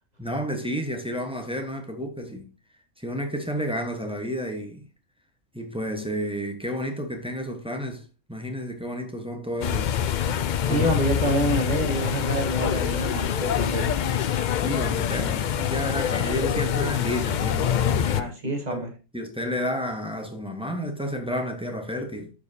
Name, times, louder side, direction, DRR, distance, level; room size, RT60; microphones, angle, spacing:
voice 1, 0.2-2.5 3.0-4.9 5.5-10.0 10.7-10.9 14.6-18.8 19.1-22.3, equal, 5° right, 1.1 m, -31 dB
sound 1, 9.6-18.2, left 9 dB, 70° left, 0.4 m, -25 dB
voice 2, 10.7-14.0 18.1-18.9, right 1 dB, 35° right, 1.7 m, -27 dB
13.0 x 4.8 x 2.7 m
omnidirectional pair, 1.3 m